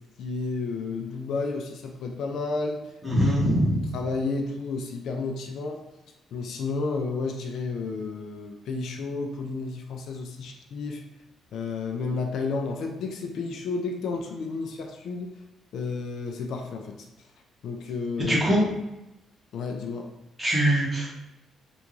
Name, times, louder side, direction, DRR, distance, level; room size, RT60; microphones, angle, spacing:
voice 1, 0.2-2.8 3.9-5.8 6.3-11.0 11.5-15.3 15.7-17.1 17.6-18.4 19.5-20.1, left 4 dB, 75° left, 2 dB, 0.5 m, -31 dB
voice 2, 3.0-3.8 18.2-18.6 20.4-21.2, equal, 5° right, -8 dB, 1.4 m, -22 dB
3.4 x 2.5 x 3.1 m, 0.94 s
cardioid pair, 90°, 0 cm